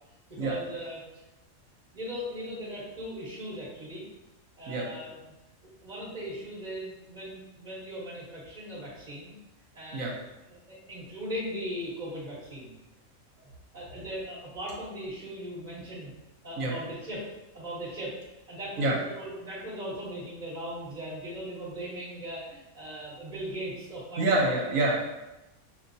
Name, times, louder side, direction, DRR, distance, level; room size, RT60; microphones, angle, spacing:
voice 1, 0.3-1.2 1.9-4.0 4.6-5.3 5.6-9.3 9.7-10.1 10.5-12.7 13.4-13.5 13.7-16.1 16.4-17.2 17.5-18.2 18.5-24.6, equal, 35° right, -8 dB, 1.2 m, -38 dB
voice 2, 24.2-25.0, right 2 dB, 75° right, -2 dB, 1.3 m, -26 dB
5.6 x 2.6 x 2.6 m, 1.0 s
omnidirectional pair, 1.4 m